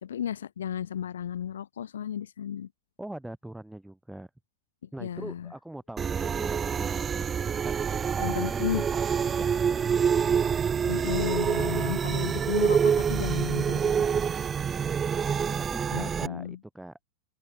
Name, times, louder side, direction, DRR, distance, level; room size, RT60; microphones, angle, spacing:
voice 1, 0.0-2.7 5.0-5.5 8.2-8.8 10.9-12.8 13.1-13.9 15.9-16.6, left 9 dB, 65° left, 0.8 m, -33 dB
voice 2, 3.0-4.3 4.9-7.3 7.6-10.9 14.6-15.2 15.7-16.9, right 1 dB, 5° right, 1.9 m, -43 dB
sound 1, 6.0-16.3, right 7 dB, 20° right, 0.6 m, -26 dB
open air
figure-of-eight pair, 90°, 0 cm